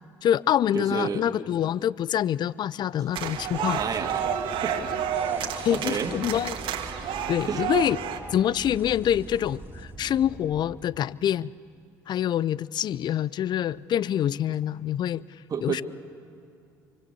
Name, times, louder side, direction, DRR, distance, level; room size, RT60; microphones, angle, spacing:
voice 1, 0.2-3.8 5.6-6.6 7.3-8.0 8.3-11.5 12.1-15.2 15.6-15.8, left 10 dB, 50° left, 21 dB, 0.5 m, -26 dB
voice 2, 0.7-1.2 3.7-4.3 4.6-4.7 5.7-6.1 7.5-7.6 15.5-15.8, right 6 dB, 40° right, 4 dB, 2.1 m, -30 dB
sound 1, 3.1-8.2, right 8 dB, 65° right, 1.9 m, -30 dB
sound 2, 3.2-10.8, right 1 dB, 20° right, 2.9 m, -43 dB
25.5 x 24.5 x 6.9 m, 2.4 s
hypercardioid pair, 60°, 9 cm